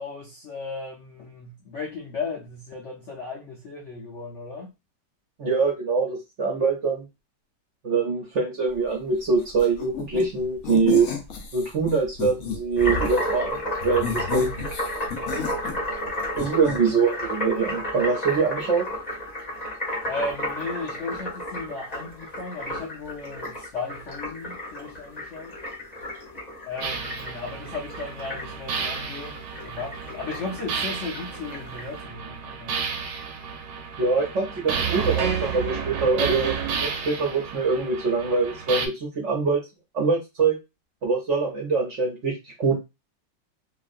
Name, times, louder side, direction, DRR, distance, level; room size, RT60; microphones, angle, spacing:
voice 1, 0.0-4.7 16.7-17.0 20.0-25.6 26.6-32.9, left 3 dB, 80° left, 0.6 m, -36 dB
voice 2, 5.4-7.0 7.8-11.1 11.5-14.7 16.4-18.9 34.0-36.6 36.8-39.6 39.9-40.6 41.0-42.3 42.6-42.8, right 4 dB, 55° right, 0.8 m, -24 dB
sound 1, 9.6-10.3 10.6-12.6 13.0-13.3 13.8-16.1 16.3-16.8, left 6 dB, 65° left, 0.9 m, -32 dB
sound 2, 12.8-31.9, left 1 dB, 35° left, 0.6 m, -32 dB
sound 3, 26.8-38.9, right 6 dB, 75° right, 1.1 m, -31 dB
2.9 x 2.4 x 2.5 m
omnidirectional pair, 2.0 m